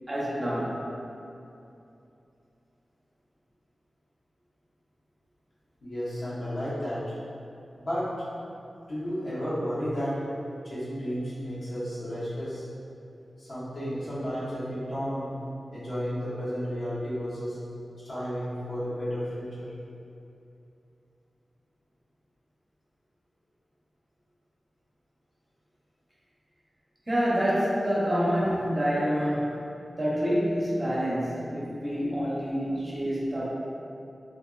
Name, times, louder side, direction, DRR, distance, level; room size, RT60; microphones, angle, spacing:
voice 1, 0.1-0.8 27.1-29.6 30.0-33.5, equal, 35° right, -7 dB, 0.7 m, -27 dB
voice 2, 5.8-7.0 7.8-8.1 8.9-10.2 10.6-12.6 13.4-15.3 15.7-17.6 18.0-19.7, equal, 75° left, -11 dB, 1.0 m, -32 dB
2.9 x 2.5 x 2.3 m, 2.7 s
wide cardioid pair, 70°, 0 cm